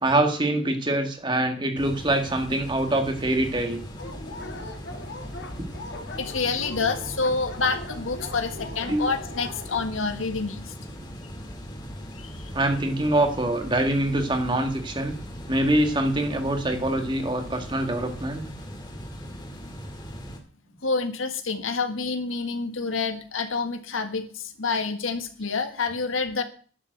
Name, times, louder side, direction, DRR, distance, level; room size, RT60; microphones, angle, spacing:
voice 1, 0.0-3.8 8.9-9.1 12.5-15.1 15.5-18.4, right 1 dB, 25° right, 5 dB, 1.8 m, -24 dB
sound 1, 1.8-20.4, equal, 20° left, 2.1 m, -39 dB
Dog, 4.0-9.9, left 2 dB, 55° left, 2.1 m, -40 dB
voice 2, 6.2-10.7 12.2-12.5 20.8-26.4, left 4 dB, 85° left, 7 dB, 1.7 m, -28 dB
11.5 x 7.3 x 7.8 m, 0.43 s
head